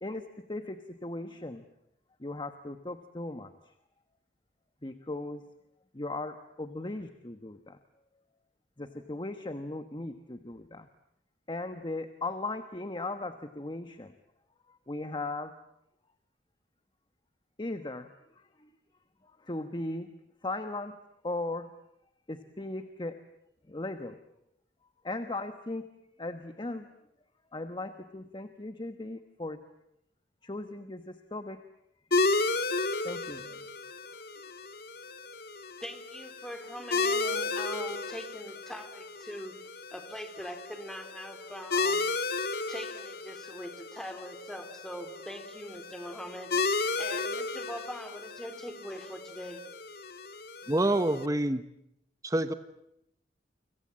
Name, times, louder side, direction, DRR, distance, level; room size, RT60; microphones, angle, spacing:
voice 1, 0.0-1.6 2.2-3.7 4.8-5.4 5.9-7.8 8.8-10.9 11.5-14.1 14.7-15.5 17.6-18.1 18.4-18.7 19.2-20.2 20.4-21.0 21.2-21.7 22.3-23.2 23.7-24.2 25.0-25.9 26.2-26.9 27.5-29.6 30.4-31.6 33.0-33.7, left 2 dB, 25° left, 1.2 m, -38 dB
sound 1, 32.1-51.3, left 3 dB, 60° left, 1.7 m, -34 dB
voice 2, 35.8-39.5 39.9-42.0 42.7-49.6, equal, 5° left, 2.8 m, -42 dB
voice 3, 50.7-51.6 52.2-52.5, right 1 dB, 20° right, 1.0 m, -26 dB
30.0 x 25.5 x 7.5 m
head